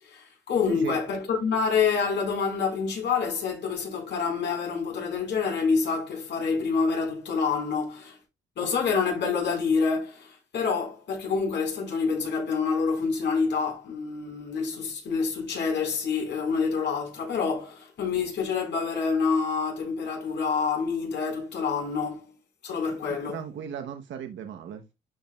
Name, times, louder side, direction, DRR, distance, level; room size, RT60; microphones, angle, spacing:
voice 1, 0.0-8.2 8.6-22.2 22.6-23.4, left 5 dB, 60° left, 4.5 m, -27 dB
voice 2, 23.3-24.9, right 8 dB, 70° right, 1.0 m, -36 dB
12.0 x 5.2 x 2.3 m
cardioid pair, 90°, 20 cm